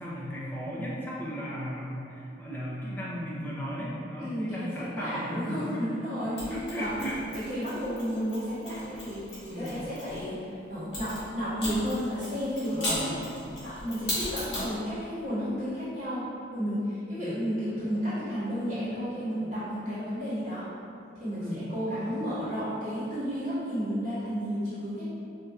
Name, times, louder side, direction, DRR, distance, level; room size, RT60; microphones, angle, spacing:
voice 1, 0.0-5.8 6.5-7.2 9.5-9.9 12.7-13.3 17.2-17.4 21.4-21.7, equal, 10° left, -7 dB, 0.5 m, -36 dB
voice 2, 4.2-6.9 7.3-13.1 13.6-16.2 16.5-20.6 21.1-25.1, equal, 35° right, -14 dB, 1.2 m, -32 dB
Mechanisms, 6.4-10.2 10.9-14.7, left 1 dB, 65° left, 1.2 m, -37 dB
4.3 x 2.5 x 2.3 m, 2.7 s
head